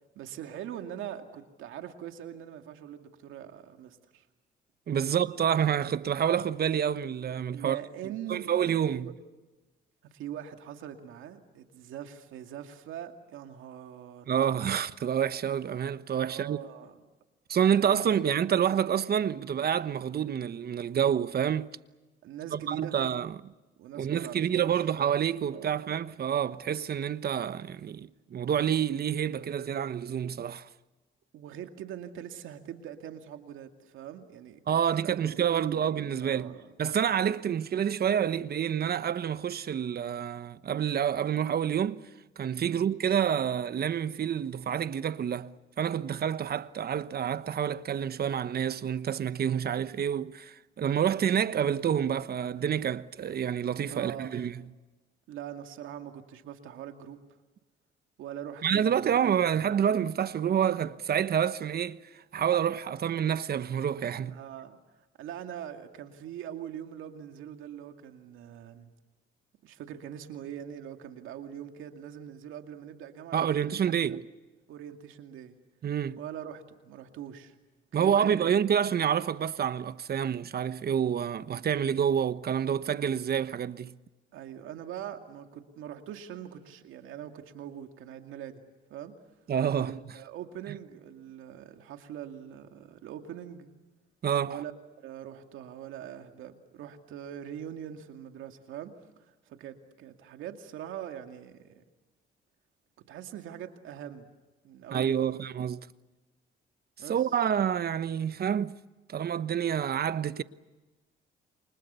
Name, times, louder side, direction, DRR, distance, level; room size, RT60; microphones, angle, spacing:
voice 1, 0.1-4.3 5.0-5.1 7.5-8.5 8.8-9.1 10.0-14.4 16.2-17.0 17.8-18.0 18.2-18.4 22.2-23.0 23.8-24.8 25.5-26.0 31.3-35.2 35.5-35.9 36.2-36.7 42.6-42.8 53.9-54.4 55.3-57.2 58.2-59.2 64.3-64.8 65.2-68.9 69.6-74.2 74.7-75.6 76.2-77.6 77.9-78.6 84.3-88.6 88.9-89.2 89.7-93.7 94.4-94.7 95.0-98.9 99.2-101.8 103.1-104.3 104.6-105.4 107.0-107.2, right 10 dB, 90° right, 2.4 m, -42 dB
voice 2, 4.9-7.8 8.3-9.1 14.3-16.6 17.5-21.8 22.5-23.5 24.0-30.7 34.7-36.5 36.8-42.0 42.4-54.6 58.6-62.0 62.3-64.4 73.3-74.3 75.8-76.2 77.9-83.9 89.5-89.9 94.2-94.6 104.9-105.9 107.1-108.8 109.1-110.4, right 8 dB, 50° right, 1.1 m, -28 dB
29.0 x 25.0 x 6.9 m
cardioid pair, 90°, 20 cm